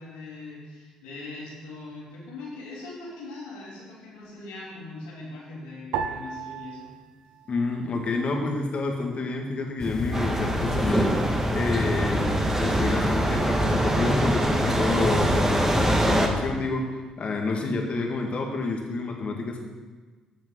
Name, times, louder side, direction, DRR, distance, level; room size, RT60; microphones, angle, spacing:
voice 1, 0.0-6.9, left 2 dB, 85° left, -5 dB, 3.1 m, -41 dB
sound 1, 5.9-8.5 8.7-9.6 10.2-10.7, right 7 dB, 75° right, 0.6 m, -37 dB
voice 2, 7.5-11.2 11.5-19.6, left 3 dB, 50° left, 1 dB, 1.9 m, -29 dB
sound 2, 9.8-16.0, left 2 dB, 20° left, 1.2 m, -31 dB
sound 3, 10.1-16.3, right 1 dB, 20° right, 1.7 m, -24 dB
12.0 x 7.2 x 3.8 m, 1.4 s
hypercardioid pair, 50°, 3 cm